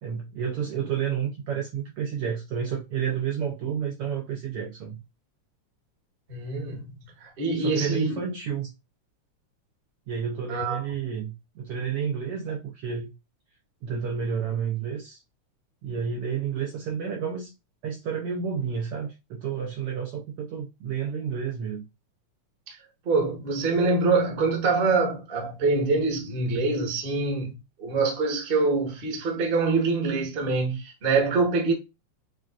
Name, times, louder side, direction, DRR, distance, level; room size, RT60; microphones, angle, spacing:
voice 1, 0.0-5.0 7.6-8.7 10.1-13.1 13.8-15.2 15.8-17.5 17.8-21.8, right 7 dB, 75° right, 1.4 m, -30 dB
voice 2, 6.3-6.9 7.2-8.2 10.5-10.8 22.7-22.8 23.0-31.7, right 3 dB, 40° right, 0.8 m, -25 dB
7.3 x 2.4 x 2.5 m
omnidirectional pair, 3.3 m